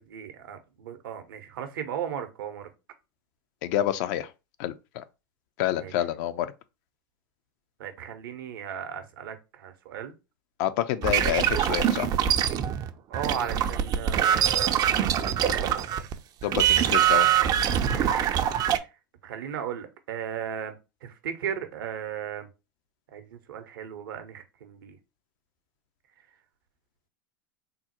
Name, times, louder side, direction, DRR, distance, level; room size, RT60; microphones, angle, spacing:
voice 1, 0.0-2.7 5.7-5.9 7.8-10.1 11.1-11.3 13.1-15.8 17.9-18.9 19.2-20.8 21.0-22.5 23.1-25.0, right 8 dB, 70° right, 0.6 m, -36 dB
voice 2, 3.6-4.3 4.6-5.0 5.6-6.5 10.6-12.1 16.4-17.3, left 12 dB, 55° left, 0.4 m, -28 dB
sound 1, 11.0-16.1 16.4-18.8, right 10 dB, 35° right, 0.3 m, -24 dB
3.6 x 2.0 x 2.8 m
hypercardioid pair, 95°, 12 cm